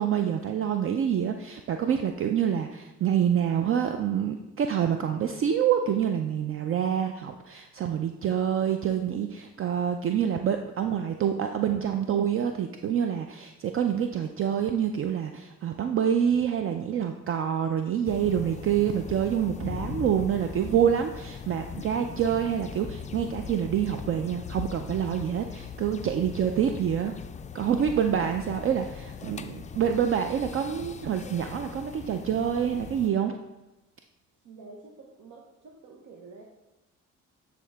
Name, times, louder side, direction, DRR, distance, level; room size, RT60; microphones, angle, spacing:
voice 1, 0.0-27.1 27.5-33.4, right 8 dB, 45° right, 6 dB, 0.4 m, -27 dB
sound 1, 18.0-33.1, left 6 dB, 25° left, 0.3 m, -40 dB
voice 2, 34.4-36.4, right 3 dB, 75° right, -1 dB, 0.9 m, -48 dB
8.3 x 3.8 x 3.4 m, 1.0 s
cardioid pair, 90°, 30 cm